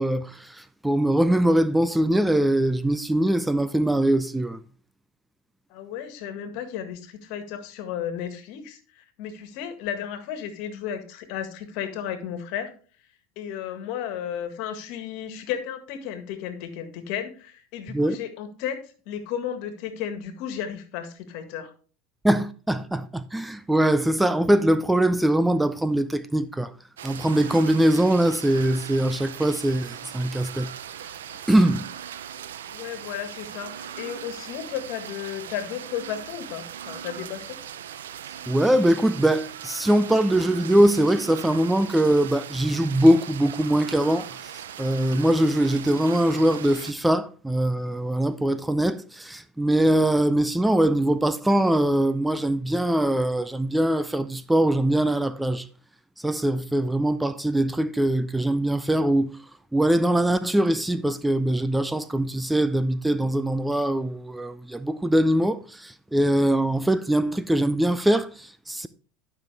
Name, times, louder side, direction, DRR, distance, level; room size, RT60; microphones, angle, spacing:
voice 1, 0.0-4.6 17.9-18.1 22.2-26.7 27.0-30.7 31.5-31.8 38.5-44.5 44.8-55.7 56.2-59.3 59.7-68.9, right 1 dB, 5° right, 0.5 m, -22 dB
voice 2, 5.7-12.7 13.4-21.7 32.7-37.6, left 9 dB, 65° left, 1.8 m, -34 dB
sound 1, 27.0-46.9, right 9 dB, 85° right, 0.7 m, -39 dB
12.0 x 5.9 x 3.4 m
hypercardioid pair, 95°, 0 cm